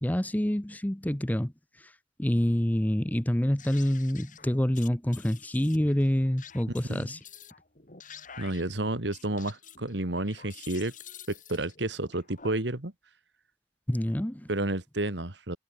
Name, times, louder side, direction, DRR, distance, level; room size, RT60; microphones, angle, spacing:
voice 1, 0.0-1.5 1.8-1.9 2.2-7.2 13.9-14.5, equal, 10° left, 0.7 m, -27 dB
sound 1, 3.6-12.5, left 7 dB, 45° left, 7.1 m, -49 dB
voice 2, 8.4-10.9 11.3-12.9 14.5-15.6, right 2 dB, 75° right, 2.3 m, -31 dB
head